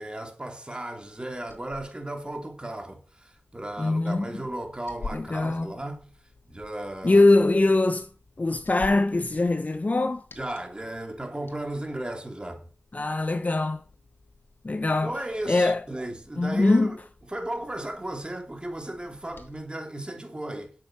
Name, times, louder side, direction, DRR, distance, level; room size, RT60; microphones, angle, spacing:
voice 1, 0.0-6.1 6.5-7.2 10.4-12.7 15.0-17.0 17.3-20.7, right 1 dB, 25° right, 2.9 m, -35 dB
Liquid, 1.0-19.6, left 3 dB, 80° left, 2.0 m, -49 dB
voice 2, 3.8-4.3 5.1-5.7 7.0-8.1 8.4-10.2 12.9-13.8 14.6-15.1 15.5-15.8 16.4-17.0, left 2 dB, 45° left, 0.9 m, -22 dB
8.7 x 7.5 x 6.5 m
cardioid pair, 45°, 4 cm